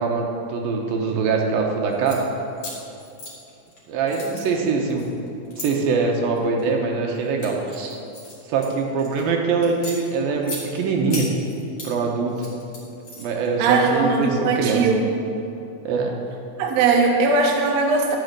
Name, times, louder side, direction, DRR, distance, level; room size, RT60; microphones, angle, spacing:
voice 1, 0.0-2.2 3.9-5.1 5.5-8.0 8.5-11.3 11.8-12.5 13.2-14.9 15.8-16.2, right 4 dB, 85° right, 0 dB, 2.9 m, -23 dB
sound 1, 1.9-2.2 2.6-3.8 4.1-5.7 6.3-6.7 7.1-9.2 9.6-10.6 11.1-11.9 12.3-13.5, left 2 dB, 45° left, 3.2 m, -37 dB
voice 2, 13.6-15.0 16.6-18.2, right 4 dB, 60° right, 0 dB, 2.1 m, -19 dB
12.0 x 6.3 x 7.8 m, 2.7 s
omnidirectional pair, 4.1 m